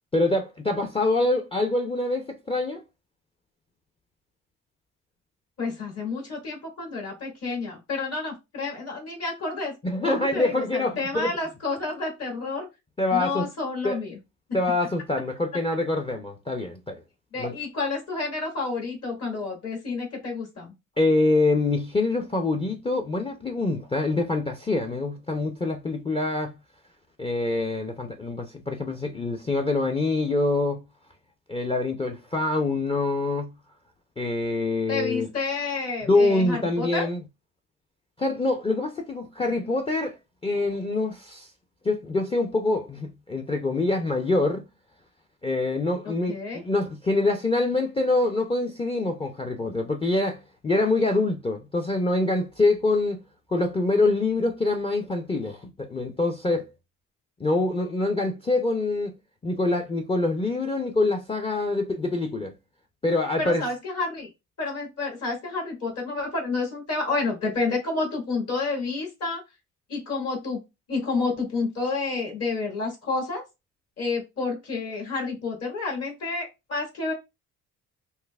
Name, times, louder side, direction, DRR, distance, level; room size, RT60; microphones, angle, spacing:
voice 1, 0.1-2.8 9.8-11.3 13.0-13.5 13.8-14.0 14.5-17.0 17.4-17.5 21.0-26.5 27.2-30.8 31.5-33.5 34.2-35.3 36.0-37.2 38.2-40.2 40.4-41.5 41.8-44.6 45.4-53.2 53.5-56.6 57.4-59.1 59.4-62.5 63.0-63.7, left 2 dB, 20° left, 0.5 m, -25 dB
voice 2, 5.6-9.7 10.0-12.7 13.1-14.2 17.3-20.7 34.9-37.1 46.0-46.6 63.4-64.3 64.6-69.4 69.9-70.6 70.9-73.4 74.0-77.1, left 3 dB, 55° left, 2.2 m, -30 dB
5.4 x 2.0 x 2.3 m
cardioid pair, 90°, 30 cm